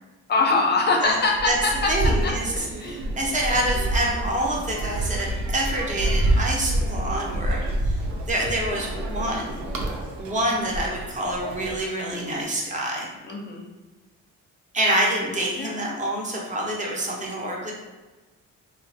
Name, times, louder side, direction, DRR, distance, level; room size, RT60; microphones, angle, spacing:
voice 1, 0.3-2.3 2.8-3.1 13.3-13.7 15.6-15.7, left 3 dB, 35° left, 1 dB, 0.5 m, -23 dB
sound 1, 1.0-11.8, right 1 dB, 80° right, 0.5 m, -28 dB
voice 2, 1.9-8.0 8.3-9.6 10.2-13.1 14.7-17.7, right 1 dB, 25° right, -2 dB, 0.6 m, -27 dB
2.4 x 2.0 x 2.6 m, 1.2 s
cardioid pair, 90°, 30 cm